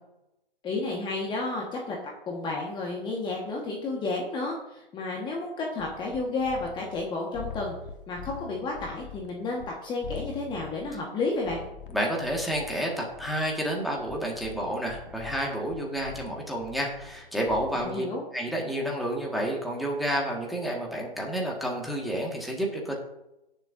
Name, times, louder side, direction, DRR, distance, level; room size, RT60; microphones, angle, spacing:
voice 1, 0.6-2.0 2.3-7.7 8.1-11.6 17.7-18.2, left 3 dB, 15° left, -2 dB, 1.5 m, -31 dB
sound 1, 5.8-7.0 7.3-9.7 10.0-17.8, left 6 dB, 60° left, 1.5 m, -44 dB
voice 2, 11.9-18.1 18.3-22.9, equal, ahead, -2 dB, 1.8 m, -30 dB
17.5 x 6.9 x 2.7 m, 0.91 s
hypercardioid pair, 135°, 30 cm